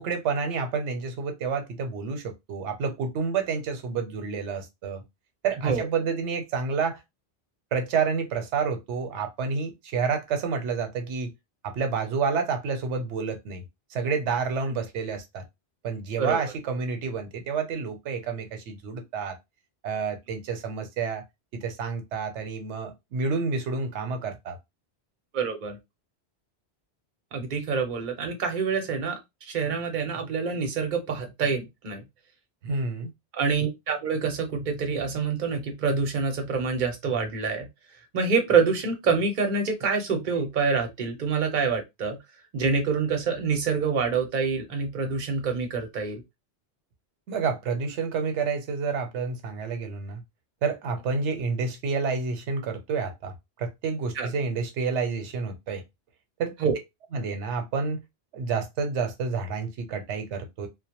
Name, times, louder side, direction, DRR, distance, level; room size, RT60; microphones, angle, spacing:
voice 1, 0.0-5.0 5.4-7.0 7.7-11.3 11.6-13.6 13.9-15.4 15.8-19.4 19.8-21.2 21.5-24.6 32.6-33.1 47.3-50.2 50.6-53.3 53.6-55.8 56.4-56.5 57.1-58.0 58.3-60.7, right 5 dB, 90° right, 0.9 m, -29 dB
voice 2, 25.3-25.8 27.3-32.0 33.3-37.7 38.1-42.2 42.5-46.2 54.1-54.3 56.6-56.8, right 5 dB, 50° right, 0.8 m, -26 dB
2.2 x 2.1 x 2.8 m
omnidirectional pair, 1.2 m